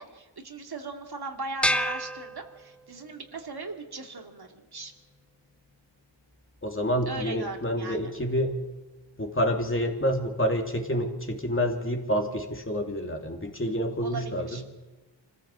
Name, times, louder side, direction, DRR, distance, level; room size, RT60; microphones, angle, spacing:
voice 1, 0.0-4.9 7.1-8.1 14.0-14.6, right 3 dB, 55° right, 3 dB, 2.6 m, -38 dB
sound 1, 1.6-3.1, equal, ahead, 1.0 m, -29 dB
voice 2, 6.6-8.6 9.2-14.6, equal, 25° left, 2 dB, 3.1 m, -28 dB
25.0 x 15.0 x 7.5 m, 1.2 s
cardioid pair, 65°, 47 cm